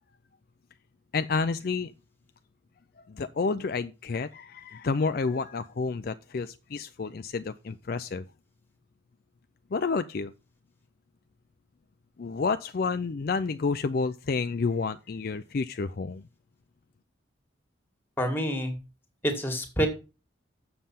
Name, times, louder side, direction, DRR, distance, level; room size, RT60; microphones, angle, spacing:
voice 1, 1.1-1.9 3.0-8.2 9.7-10.3 12.2-16.3, left 4 dB, 50° left, 0.4 m, -30 dB
voice 2, 18.2-18.7 19.2-19.9, equal, 10° left, 1.8 m, -27 dB
7.5 x 6.8 x 5.7 m
head